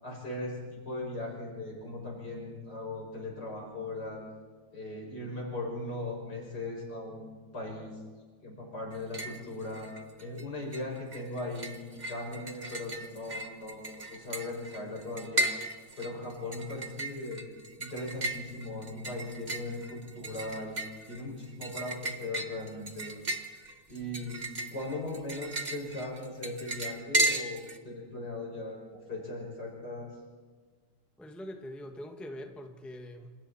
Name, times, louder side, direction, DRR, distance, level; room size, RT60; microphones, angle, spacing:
voice 1, 0.0-4.2 4.7-8.0 8.4-9.9 10.2-15.5 16.0-17.4 17.8-20.8 21.1-23.1 23.9-24.4 24.7-30.1, left 2 dB, 65° left, -2 dB, 6.7 m, -38 dB
sound 1, 8.9-9.4 9.7-10.4 10.7-27.8, right 1 dB, 30° right, 1.2 m, -35 dB
voice 2, 31.2-33.3, equal, ahead, 3 dB, 1.4 m, -43 dB
27.5 x 27.0 x 4.3 m, 1.5 s
omnidirectional pair, 1.9 m